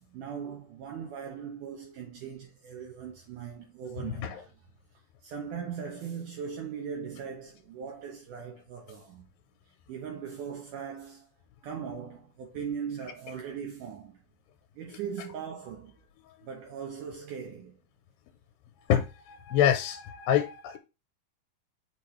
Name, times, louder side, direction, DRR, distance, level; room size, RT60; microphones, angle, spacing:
voice 1, 0.0-4.5 5.2-9.3 9.9-11.3 11.6-14.2 14.8-16.0 16.4-17.7, right 7 dB, 70° right, 2.4 m, -39 dB
voice 2, 4.0-4.4 18.9-20.8, left 10 dB, 80° left, 2.4 m, -26 dB
8.4 x 4.5 x 3.2 m
omnidirectional pair, 4.2 m